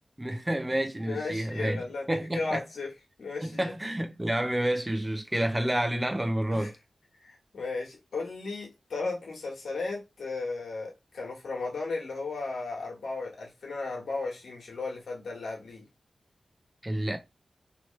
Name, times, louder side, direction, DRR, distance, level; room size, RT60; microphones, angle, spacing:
voice 1, 0.2-2.6 3.4-6.7 16.8-17.2, right 1 dB, 20° right, 0.7 m, -29 dB
voice 2, 1.1-2.9 3.2-3.7 6.5-6.7 7.2-15.8, left 3 dB, 85° left, 1.4 m, -35 dB
3.1 x 3.0 x 3.2 m
cardioid pair, 65°, 0 cm